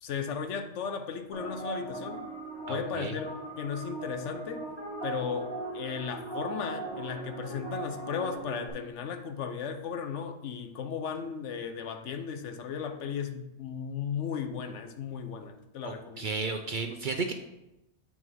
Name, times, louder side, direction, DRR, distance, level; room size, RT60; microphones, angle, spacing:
voice 1, 0.0-2.3 2.7-4.7 5.0-16.3, left 7 dB, 85° left, 8 dB, 1.0 m, -36 dB
sound 1, 1.3-8.7, right 2 dB, 10° left, 1.8 m, -39 dB
voice 2, 2.7-3.1 15.8-17.3, right 4 dB, 55° right, 5 dB, 0.6 m, -33 dB
7.4 x 6.3 x 3.6 m, 0.92 s
omnidirectional pair, 1.2 m